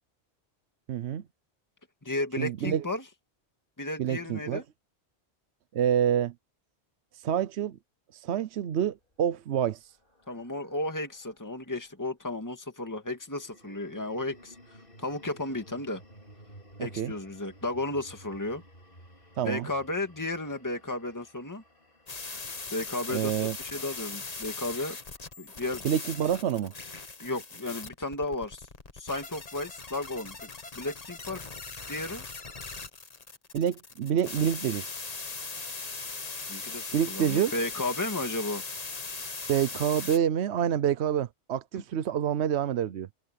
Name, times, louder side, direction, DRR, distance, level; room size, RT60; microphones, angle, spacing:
voice 1, 0.9-1.2 2.4-2.8 4.0-4.6 5.7-6.3 7.1-7.8 8.1-9.8 16.8-17.1 19.4-19.7 23.1-23.6 25.8-26.7 33.5-34.9 36.9-37.5 39.5-43.1, right 9 dB, 80° right, 1.0 m, -27 dB
voice 2, 2.0-3.0 3.8-4.6 10.3-16.0 16.8-18.6 19.4-21.6 22.7-23.3 23.6-25.0 25.4-25.9 27.2-28.7 28.9-30.5 30.7-31.5 31.9-32.2 36.5-38.6 41.7-41.8, left 2 dB, 15° left, 2.1 m, -34 dB
sound 1, 9.0-11.5 13.1-25.4, equal, 50° left, 4.7 m, -55 dB
sound 2, 22.1-40.2, left 4 dB, 35° left, 1.4 m, -40 dB
omnidirectional pair, 1.1 m